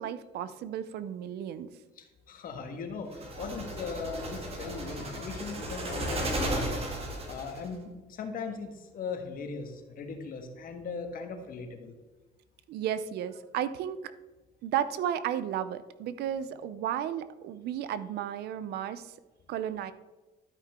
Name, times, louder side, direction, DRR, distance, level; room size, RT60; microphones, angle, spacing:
voice 1, 0.0-1.7 12.7-14.1 14.6-19.1 19.5-19.9, right 10 dB, 75° right, 13 dB, 0.6 m, -33 dB
voice 2, 2.0-6.9 7.3-11.9, left 4 dB, 55° left, 5 dB, 1.6 m, -39 dB
sound 1, 3.1-7.7, right 1 dB, 35° right, 2.1 m, -34 dB
12.5 x 5.7 x 3.6 m, 1.2 s
cardioid pair, 110°, 17 cm